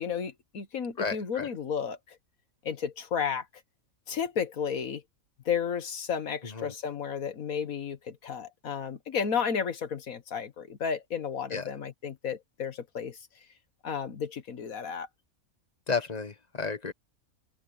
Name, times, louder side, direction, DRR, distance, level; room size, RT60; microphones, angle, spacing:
voice 1, 0.0-2.2 2.6-3.5 4.1-5.0 5.5-13.2 13.8-15.1, left 7 dB, 75° left, 1.8 m, -32 dB
voice 2, 1.0-1.5 6.5-6.7 11.5-11.6 15.9-16.9, left 4 dB, 30° left, 1.3 m, -32 dB
open air
omnidirectional pair, 1.5 m